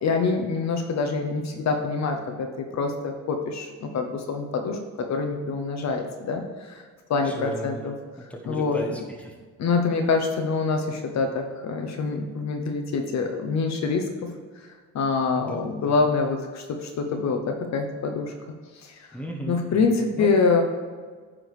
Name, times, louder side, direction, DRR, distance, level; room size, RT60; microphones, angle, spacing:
voice 1, 0.0-6.8 7.1-7.9 8.5-8.8 9.6-14.3 14.9-18.3 18.8-19.0 19.5-20.6, left 4 dB, 65° left, 4 dB, 0.9 m, -25 dB
voice 2, 7.2-7.8 8.2-9.4 15.4-16.0 19.1-20.3, right 1 dB, 5° left, 0 dB, 1.3 m, -35 dB
9.2 x 3.8 x 4.9 m, 1.5 s
cardioid pair, 90°, 30 cm